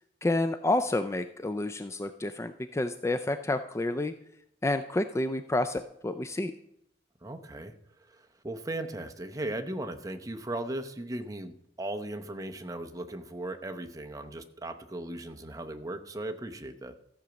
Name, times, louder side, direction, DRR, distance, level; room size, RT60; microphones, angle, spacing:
voice 1, 0.2-4.1 4.6-6.5, left 2 dB, 15° left, 10 dB, 0.3 m, -29 dB
voice 2, 7.2-7.7 8.1-17.0, right 1 dB, 20° right, 6 dB, 0.8 m, -37 dB
13.5 x 5.1 x 7.0 m, 0.77 s
head